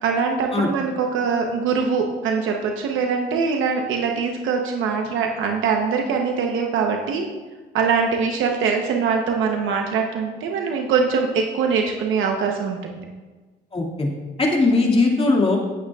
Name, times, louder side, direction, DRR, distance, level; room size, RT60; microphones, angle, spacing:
voice 1, 0.0-7.3 7.7-13.0, right 5 dB, 90° right, 2 dB, 0.9 m, -23 dB
voice 2, 13.7-14.1 14.4-15.6, left 3 dB, 30° left, -1 dB, 2.2 m, -19 dB
15.5 x 8.3 x 2.4 m, 1.3 s
cardioid pair, 90°, 20 cm